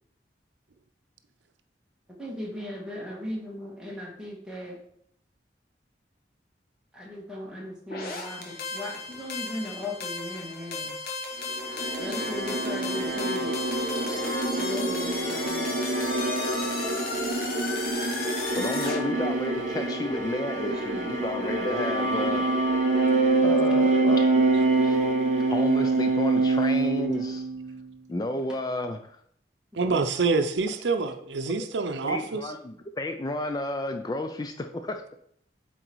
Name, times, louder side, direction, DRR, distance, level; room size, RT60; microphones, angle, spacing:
voice 1, 2.2-4.8 6.9-11.0 12.0-13.6 14.6-16.0 29.8-30.0, left 1 dB, 5° right, -3 dB, 1.7 m, -37 dB
sound 1, 7.9-19.0, left 3 dB, 55° left, 1.2 m, -34 dB
sound 2, 11.5-27.8, right 2 dB, 45° right, 1.0 m, -26 dB
voice 2, 18.5-22.5 23.4-24.4 24.8-25.0 25.5-27.5 28.1-29.2 31.4-31.7 32.0-35.0, left 1 dB, 20° left, 7 dB, 0.4 m, -32 dB
voice 3, 29.7-32.4, right 4 dB, 85° right, 8 dB, 0.6 m, -26 dB
8.0 x 3.9 x 4.6 m, 0.67 s
head